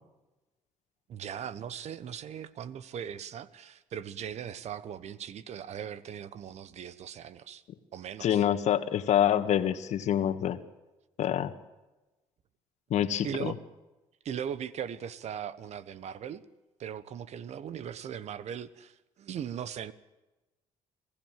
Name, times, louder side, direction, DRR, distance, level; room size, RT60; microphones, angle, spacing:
voice 1, 1.1-7.6 7.9-8.4 13.2-13.6 14.2-16.4 16.8-19.9, right 8 dB, 60° right, 17 dB, 1.2 m, -39 dB
voice 2, 8.2-10.6 11.2-11.5 12.9-13.5, left 10 dB, 60° left, 11 dB, 1.6 m, -26 dB
26.5 x 16.0 x 7.6 m, 1.1 s
supercardioid pair, 70°, 13 cm